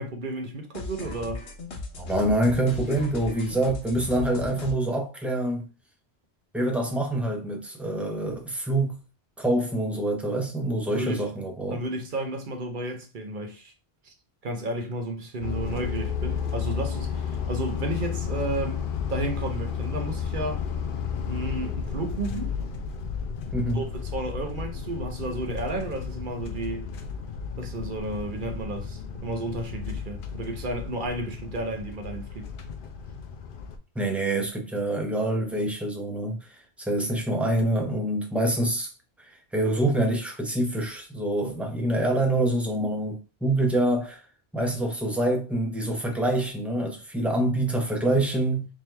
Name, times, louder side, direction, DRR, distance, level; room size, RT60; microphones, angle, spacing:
voice 1, 0.0-1.4 11.0-11.3 11.7-13.7 14.0-14.1 14.4-20.6 21.2-22.5 23.7-26.9 27.6-32.5, right 2 dB, 50° right, 0.9 m, -32 dB
sound 1, 0.7-4.7, left 3 dB, 75° left, 1.2 m, -37 dB
voice 2, 2.0-5.7 6.5-9.0 9.4-11.8 23.5-23.9 34.0-36.5 36.8-38.9 39.5-44.2 44.5-48.7, right 1 dB, ahead, 0.6 m, -26 dB
sound 2, 15.4-33.8, left 6 dB, 60° left, 0.7 m, -33 dB
3.7 x 3.0 x 3.2 m
omnidirectional pair, 1.1 m